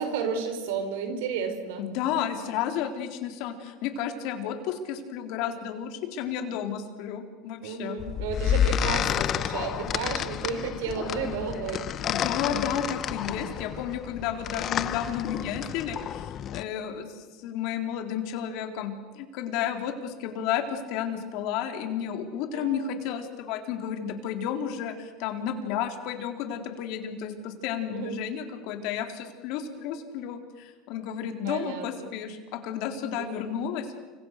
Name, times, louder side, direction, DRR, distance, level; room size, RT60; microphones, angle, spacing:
voice 1, 0.0-1.8 7.6-11.9 22.5-22.9 27.9-28.2 31.4-32.1 33.2-33.4, right 6 dB, 80° right, 7 dB, 5.2 m, -32 dB
voice 2, 1.8-8.0 12.1-33.9, left 8 dB, 60° left, 5 dB, 3.8 m, -32 dB
sound 1, 8.0-16.6, left 10 dB, 40° left, 1.0 m, -30 dB
29.5 x 25.0 x 6.6 m, 1.3 s
supercardioid pair, 125°, 0 cm